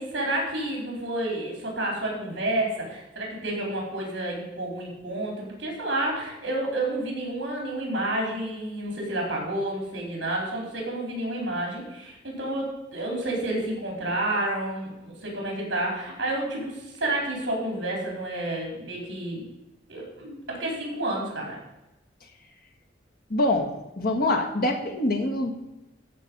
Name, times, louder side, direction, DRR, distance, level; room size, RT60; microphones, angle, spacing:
voice 1, 0.0-19.4 19.9-21.6, right 1 dB, 70° right, -1 dB, 4.3 m, -30 dB
voice 2, 23.3-23.7 24.0-25.6, left 1 dB, 50° left, 3 dB, 1.4 m, -24 dB
13.5 x 5.2 x 5.4 m, 0.97 s
head